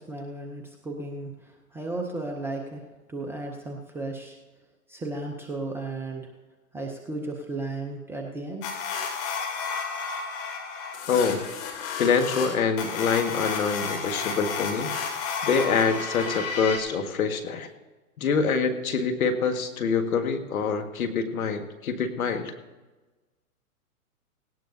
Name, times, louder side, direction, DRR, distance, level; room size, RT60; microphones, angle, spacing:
voice 1, 0.0-4.4 4.9-6.3 6.7-8.6, right 2 dB, 5° right, 2 dB, 0.5 m, -35 dB
sound 1, 8.6-16.8, left 5 dB, 35° left, 3.0 m, -32 dB
voice 2, 11.1-11.4 12.0-14.9 15.4-17.7 18.2-22.5, left 5 dB, 65° left, 7 dB, 1.9 m, -25 dB
17.5 x 17.5 x 2.7 m, 1.2 s
hypercardioid pair, 125°, 45 cm